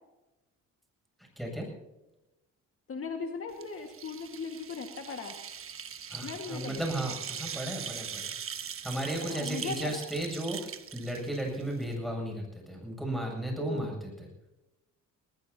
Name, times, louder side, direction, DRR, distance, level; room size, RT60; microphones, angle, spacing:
voice 1, 1.4-1.7 6.1-8.3 8.8-14.3, right 1 dB, ahead, 1 dB, 7.9 m, -35 dB
voice 2, 2.9-5.4 6.2-6.9 9.2-10.1 13.6-13.9, left 4 dB, 45° left, 3 dB, 1.9 m, -38 dB
sound 1, 3.5-11.9, right 7 dB, 45° right, 1.3 m, -41 dB
21.0 x 20.5 x 2.9 m, 0.98 s
cardioid pair, 90°, 30 cm